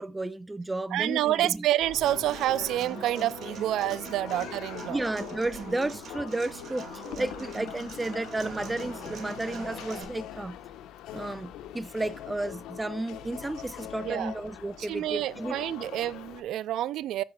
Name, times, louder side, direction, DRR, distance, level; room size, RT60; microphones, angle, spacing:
voice 1, 0.0-1.7 4.9-10.6 11.1-15.6, right 2 dB, 15° right, 0.7 m, -33 dB
voice 2, 0.9-5.0 14.0-14.3 14.8-17.2, right 14 dB, 65° right, 0.4 m, -28 dB
sound 1, 1.8-16.4, left 10 dB, 70° left, 1.2 m, -43 dB
Human voice / Acoustic guitar, 2.0-10.0, right 4 dB, 50° right, 2.3 m, -42 dB
14.0 x 7.8 x 2.4 m
hypercardioid pair, 65°, 0 cm